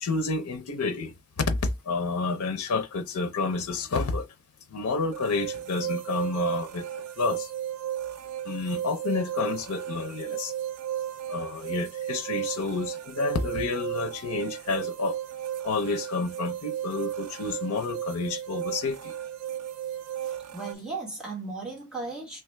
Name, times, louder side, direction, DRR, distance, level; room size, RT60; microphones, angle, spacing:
voice 1, 0.0-4.3 4.7-7.5 8.4-10.5 11.3-15.2 15.6-19.1, left 3 dB, 90° left, 0.5 m, -30 dB
sound 1, 5.1-20.7, right 11 dB, 85° right, 0.3 m, -34 dB
voice 2, 20.2-22.4, right 3 dB, 5° right, 1.3 m, -36 dB
3.2 x 2.3 x 3.2 m
head